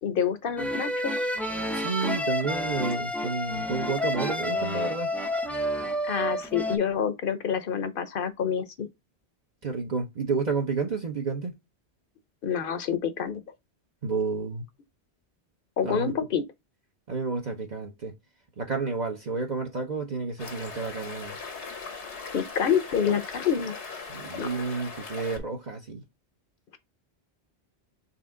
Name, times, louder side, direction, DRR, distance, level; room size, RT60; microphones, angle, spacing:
voice 1, 0.0-1.3 6.1-8.9 12.4-13.4 15.8-16.4 22.3-23.7 24.4-24.5, left 7 dB, 55° left, 0.8 m, -27 dB
sound 1, 0.6-6.8, left 1 dB, ahead, 0.4 m, -29 dB
voice 2, 1.7-5.1 9.6-11.5 14.0-14.6 15.8-16.1 17.1-18.1 18.6-21.4 24.1-26.0, right 4 dB, 45° right, 0.8 m, -30 dB
sound 2, 20.4-25.4, left 4 dB, 85° left, 1.4 m, -39 dB
4.3 x 3.4 x 3.6 m
omnidirectional pair, 1.1 m